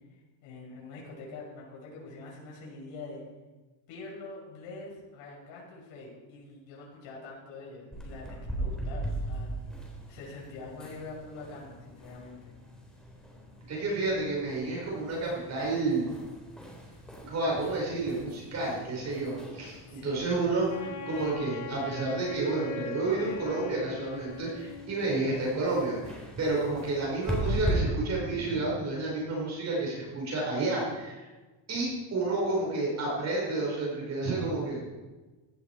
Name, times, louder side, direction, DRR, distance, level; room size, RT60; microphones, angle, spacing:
voice 1, 0.1-3.2 3.9-9.5 10.1-12.5 19.9-20.3, left 3 dB, 65° left, -3 dB, 5.9 m, -45 dB
sound 1, 7.9-27.7, right 1 dB, ahead, 3.8 m, -40 dB
voice 2, 13.7-16.1 17.2-31.3 31.7-34.8, right 2 dB, 30° right, -3 dB, 5.2 m, -30 dB
Wind instrument woodwind instrument, 20.7-25.1, left 5 dB, 35° left, 1.4 m, -41 dB
16.0 x 12.0 x 4.7 m, 1.2 s
cardioid pair, 140°, 50 cm